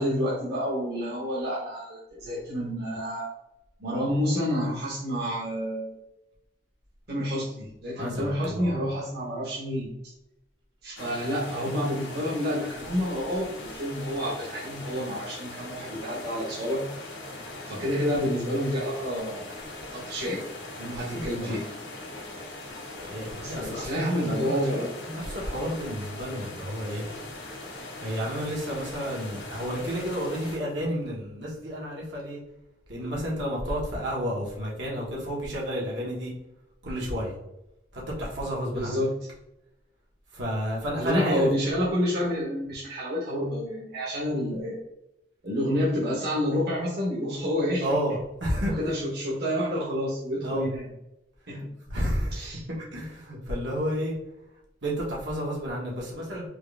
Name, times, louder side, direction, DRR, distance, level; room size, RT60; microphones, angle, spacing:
voice 1, 0.0-3.3 3.8-5.9 7.1-9.9 10.8-16.9 17.7-19.6 19.9-20.4 20.8-21.6 23.4-24.9 38.7-39.1 41.0-44.8 45.4-47.9 48.8-50.9 51.5-51.7 52.3-52.6, equal, 60° right, -6 dB, 1.2 m, -29 dB
voice 2, 7.9-8.7 20.8-21.0 21.4-21.6 23.0-27.1 28.0-32.4 32.9-36.3 36.8-37.4 37.9-39.0 40.3-41.5 47.8-48.7 50.4-50.7 51.5-51.6 51.9-52.5 52.8-54.1 54.8-56.5, equal, 80° right, -4 dB, 1.4 m, -31 dB
sound 1, 11.0-30.6, left 2 dB, 80° left, 1.4 m, -40 dB
4.6 x 2.5 x 3.4 m, 0.86 s
head